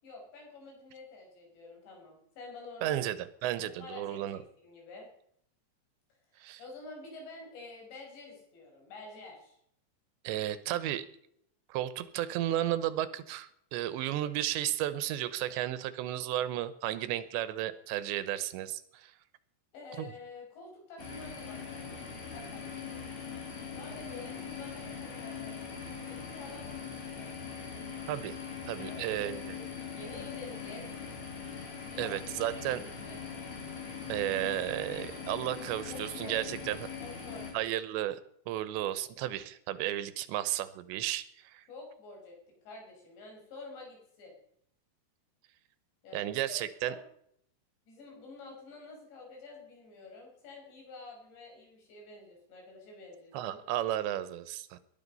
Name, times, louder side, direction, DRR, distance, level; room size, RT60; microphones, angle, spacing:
voice 1, 0.0-3.0 3.6-5.1 6.3-9.6 19.7-21.9 22.3-23.1 23.7-27.4 28.8-29.6 29.9-30.9 31.9-33.2 34.9-35.1 35.6-36.4 37.0-37.6 41.7-44.3 46.0-46.6 46.8-47.0 47.9-53.6, left 3 dB, 85° left, 1 dB, 7.7 m, -49 dB
voice 2, 2.8-4.4 6.4-6.6 10.2-11.1 11.7-19.1 20.0-20.1 28.1-28.4 28.7-29.5 32.0-32.8 34.1-36.9 37.5-38.2 38.5-41.6 46.1-46.9 53.3-54.8, right 13 dB, 90° right, 15 dB, 3.2 m, -33 dB
sound 1, 21.0-37.5, left 6 dB, 40° left, 3.9 m, -42 dB
20.0 x 11.5 x 5.5 m, 0.70 s
omnidirectional pair, 5.0 m